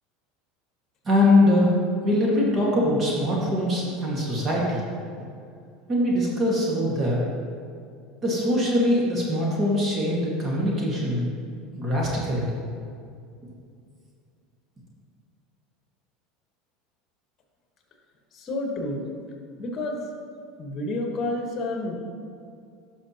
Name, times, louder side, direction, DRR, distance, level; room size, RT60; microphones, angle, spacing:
voice 1, 1.0-1.7 2.0-4.8 5.9-7.2 8.2-11.2 11.7-12.5, left 1 dB, 30° right, -4 dB, 1.7 m, -22 dB
voice 2, 18.3-19.1 19.6-20.1 20.6-22.0, left 2 dB, 35° left, 2 dB, 1.4 m, -29 dB
11.0 x 5.8 x 2.9 m, 2.3 s
supercardioid pair, 115°, 0 cm